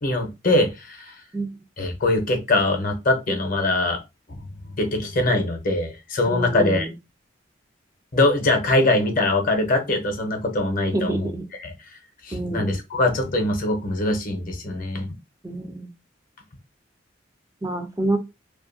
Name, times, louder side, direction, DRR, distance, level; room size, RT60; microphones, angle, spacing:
voice 1, 0.0-1.2 1.8-4.0 4.8-6.9 8.1-11.3 11.6-11.7 12.2-15.1, left 2 dB, 45° left, 4 dB, 0.7 m, -22 dB
voice 2, 6.3-6.9 10.8-11.4 12.3-12.7 15.4-15.9 17.6-18.2, right 2 dB, 15° right, 4 dB, 0.4 m, -27 dB
2.6 x 2.4 x 2.5 m, 0.24 s
head